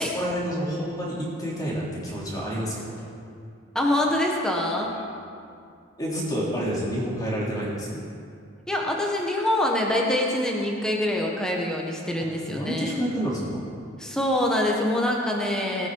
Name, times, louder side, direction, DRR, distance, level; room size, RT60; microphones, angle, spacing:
voice 1, 0.0-2.9 6.0-8.0 12.5-13.7, equal, 20° left, -5 dB, 3.1 m, -29 dB
voice 2, 3.7-4.9 8.7-12.9 14.0-15.9, left 1 dB, 5° left, -2 dB, 1.5 m, -25 dB
19.5 x 8.4 x 4.9 m, 2.3 s
head